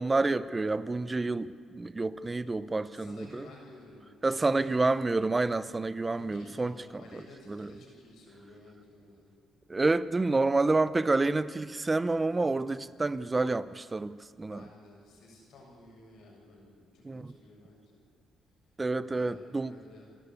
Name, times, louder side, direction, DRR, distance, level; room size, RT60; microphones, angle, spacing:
voice 1, 0.0-3.5 4.2-6.7 7.5-7.7 9.7-14.6 17.0-17.3 18.8-19.7, right 3 dB, 20° right, 0.6 m, -28 dB
voice 2, 2.9-4.8 6.1-9.3 14.5-18.0 19.0-20.1, left 2 dB, 75° left, 6.8 m, -53 dB
27.5 x 11.5 x 8.5 m
cardioid pair, 90°, 0 cm